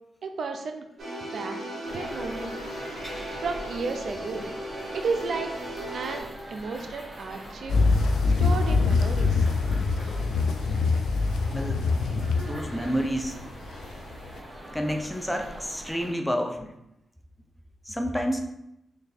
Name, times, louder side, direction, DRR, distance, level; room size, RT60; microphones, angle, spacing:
voice 1, 0.2-0.9 1.3-1.6 1.9-2.5 3.4-4.5 4.9-5.6 5.9-7.8 8.4-9.4, right 4 dB, 70° right, 5 dB, 0.4 m, -33 dB
sound 1, 1.0-6.2, right 1 dB, 50° right, 1.0 m, -36 dB
sound 2, 1.8-16.1, equal, 30° right, 1.4 m, -43 dB
sound 3, 7.7-14.4, left 4 dB, 85° left, 0.3 m, -24 dB
voice 2, 11.5-11.9 12.5-13.4 14.7-16.7 17.9-18.4, equal, 5° left, 4 dB, 0.6 m, -29 dB
3.3 x 2.6 x 4.1 m, 0.84 s
cardioid pair, 60°, 0 cm